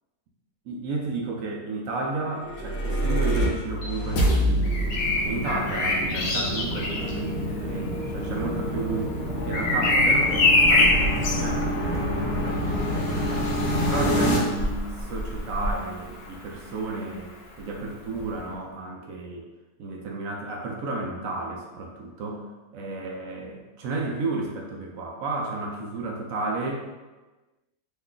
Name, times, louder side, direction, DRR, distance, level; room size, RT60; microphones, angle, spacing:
voice 1, 0.7-4.8 5.2-9.2 9.5-13.5 13.9-17.3 17.6-19.5 19.8-22.4 22.7-27.0, right 3 dB, 70° right, 0 dB, 0.9 m, -32 dB
sound 1, 2.3-14.4, equal, 60° left, 0.7 m, -27 dB
Bird vocalization bird call bird song, 4.6-16.4 18.2-18.4, left 2 dB, 75° left, 1.1 m, -26 dB
3.1 x 2.3 x 3.7 m, 1.2 s
omnidirectional pair, 1.6 m